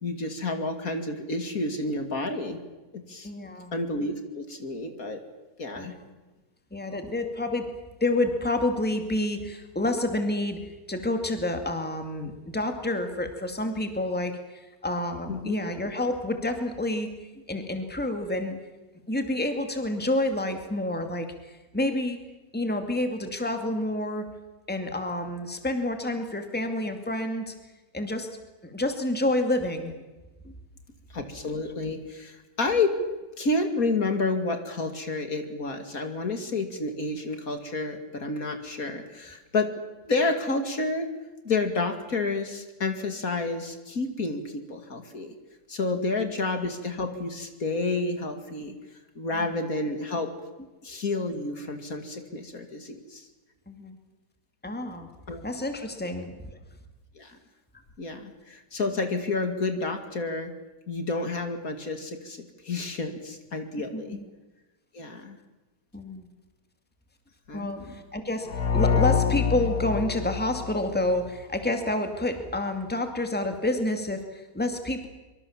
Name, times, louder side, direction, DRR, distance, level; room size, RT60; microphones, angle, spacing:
voice 1, 0.0-2.6 2.9-3.3 3.7-5.2 5.6-5.9 15.3-15.5 31.1-32.9 33.4-39.7 40.1-41.1 41.4-45.3 45.7-48.8 49.2-50.3 50.8-53.3 55.3-55.4 57.2-57.4 58.0-60.5 60.9-64.2 64.9-65.4 67.5-67.9, left 3 dB, 60° left, 6 dB, 2.8 m, -30 dB
voice 2, 3.2-3.7 5.8-6.1 6.7-7.7 8.0-10.6 10.9-17.1 17.5-18.6 19.1-22.2 22.5-24.3 24.7-27.5 27.9-28.3 28.6-29.9 30.4-30.5 49.3-49.5 53.7-54.0 54.6-55.1 55.4-56.3 63.9-64.2 65.9-66.3 67.5-75.1, left 1 dB, 5° left, 6 dB, 2.4 m, -29 dB
sound 1, 68.5-71.3, left 7 dB, 80° left, 1.9 m, -26 dB
25.0 x 24.5 x 7.3 m, 1.1 s
omnidirectional pair, 1.7 m